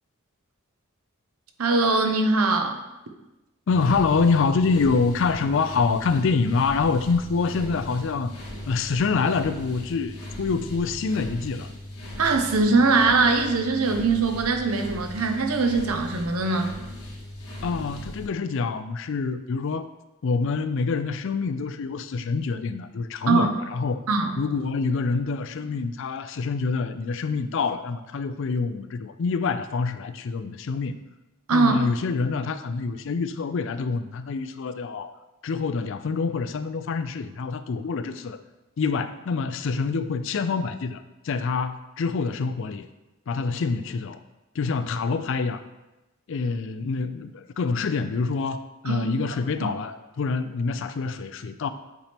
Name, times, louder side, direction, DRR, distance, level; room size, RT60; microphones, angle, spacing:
voice 1, 1.6-2.8 12.2-16.7 23.3-23.5 24.1-24.4 31.5-31.8 48.8-49.1 49.6-49.7, right 3 dB, 80° right, 5 dB, 0.8 m, -22 dB
sound 1, 3.7-18.3, left 1 dB, 90° left, 2.0 m, -38 dB
voice 2, 3.7-8.3 8.7-11.7 17.6-19.9 20.2-24.0 24.4-31.0 31.5-35.1 35.4-38.4 38.8-42.9 43.3-44.2 44.6-45.6 46.3-51.7, left 4 dB, 60° left, 11 dB, 0.4 m, -26 dB
8.3 x 4.3 x 3.5 m, 1.0 s
head